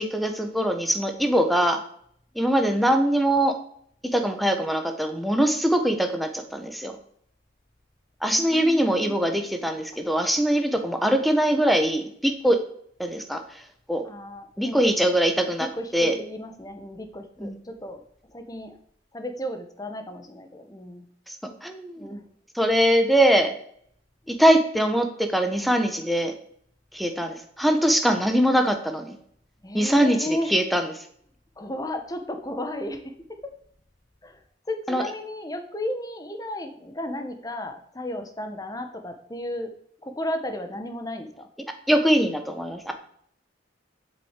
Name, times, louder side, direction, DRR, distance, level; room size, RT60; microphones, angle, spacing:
voice 1, 0.0-1.8 2.3-3.6 4.1-7.0 8.2-12.6 13.0-13.4 13.9-14.0 14.6-16.2 17.4-17.6 21.3-22.1 22.6-23.5 24.3-26.3 26.9-29.2 29.7-31.0 34.9-35.0 41.9-42.9, right 1 dB, ahead, 6 dB, 1.2 m, -22 dB
voice 2, 8.3-9.2 9.9-10.0 14.0-14.9 15.6-18.0 18.3-18.8 19.1-21.0 22.0-22.2 24.3-24.4 29.6-30.5 31.6-33.5 34.2-34.4 34.7-39.7 40.0-41.5, left 1 dB, 20° left, 7 dB, 1.2 m, -34 dB
7.9 x 7.8 x 8.2 m, 0.66 s
head